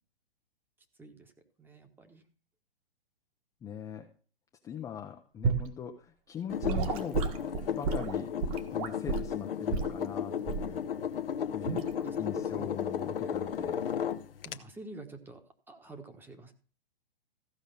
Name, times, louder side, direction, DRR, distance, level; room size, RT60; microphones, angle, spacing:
voice 1, 1.6-2.2 12.0-12.7 14.4-15.4 15.7-16.5, right 3 dB, 5° right, 7 dB, 1.2 m, -48 dB
voice 2, 3.6-4.1 4.6-7.2 7.7-8.3 8.7-10.8 11.5-11.8 12.2-13.8, left 8 dB, 10° left, 4 dB, 0.6 m, -41 dB
Gurgling / Sink (filling or washing) / Liquid, 5.4-5.7 6.6-9.3 9.7-10.0 10.5-10.7 11.6-11.9, right 5 dB, 40° right, 1.6 m, -31 dB
sound 1, 6.5-14.6, left 8 dB, 70° left, 1.0 m, -34 dB
15.0 x 5.1 x 6.8 m, 0.40 s
hypercardioid pair, 130°, 29 cm